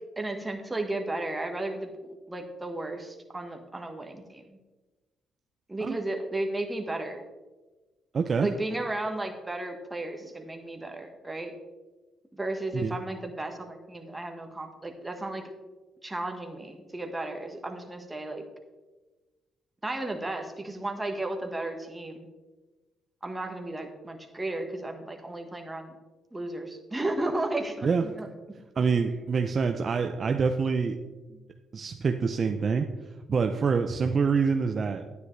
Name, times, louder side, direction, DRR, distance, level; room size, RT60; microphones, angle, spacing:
voice 1, 0.2-4.6 5.7-7.2 8.4-11.5 12.3-15.4 16.0-18.4 19.8-22.3 23.2-25.9 26.3-28.3 28.8-29.0, right 2 dB, 15° right, 4 dB, 1.4 m, -34 dB
voice 2, 8.1-8.5 12.7-13.0 27.8-28.1 28.8-31.0 31.7-32.9 33.3-35.0, right 5 dB, 45° right, 6 dB, 0.5 m, -26 dB
10.0 x 9.4 x 3.2 m, 1.2 s
cardioid pair, 90°, 0 cm